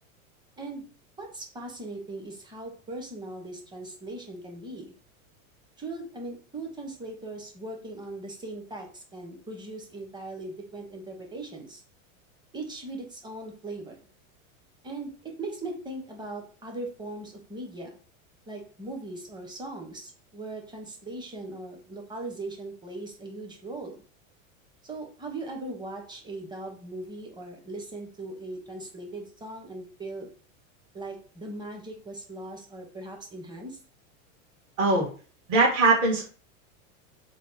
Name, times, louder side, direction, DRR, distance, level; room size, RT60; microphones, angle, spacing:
voice 1, 1.2-4.9 5.8-11.8 12.5-14.0 14.8-18.0 18.5-24.0 24.8-30.3 30.9-33.8, right 2 dB, 10° right, 2 dB, 0.8 m, -39 dB
voice 2, 34.8-35.1 35.5-36.3, right 3 dB, 50° right, -4 dB, 1.6 m, -21 dB
3.4 x 2.1 x 3.9 m, 0.39 s
supercardioid pair, 125°, 41 cm